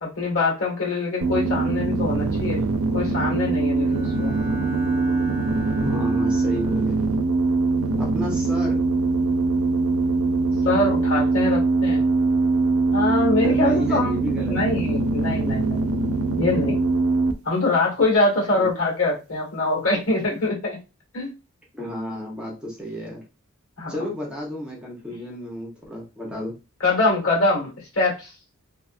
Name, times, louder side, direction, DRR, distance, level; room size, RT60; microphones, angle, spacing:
voice 1, 0.0-2.6 2.9-4.4 10.7-12.0 12.9-14.1 14.5-15.8 16.4-16.8 17.5-20.8 21.1-21.3 23.8-24.0 26.8-28.3, left 2 dB, 85° left, -3 dB, 1.6 m, -23 dB
sound 1, 1.2-17.3, right 3 dB, 80° right, 0.4 m, -22 dB
Bowed string instrument, 3.8-7.0, right 3 dB, 25° right, 1.2 m, -37 dB
voice 2, 5.8-7.0 8.0-8.8 13.4-14.6 18.6-18.7 21.7-23.2 23.9-26.5, equal, 5° right, -3 dB, 0.8 m, -31 dB
2.7 x 2.5 x 2.4 m, 0.29 s
head